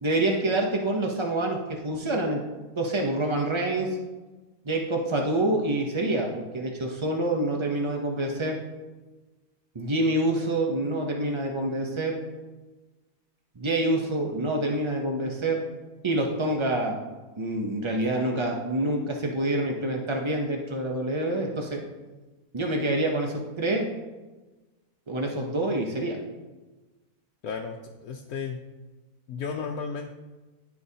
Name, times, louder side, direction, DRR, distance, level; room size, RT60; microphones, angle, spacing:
voice 1, 0.0-4.0 4.7-8.6 9.7-12.2 13.6-15.6 16.0-17.0 17.4-21.8 22.5-23.9 25.1-26.2, right 1 dB, 45° right, 1 dB, 0.3 m, -27 dB
voice 2, 27.4-28.6 29.3-30.1, left 5 dB, 75° left, 2 dB, 1.1 m, -34 dB
13.5 x 4.7 x 2.8 m, 1.2 s
omnidirectional pair, 1.6 m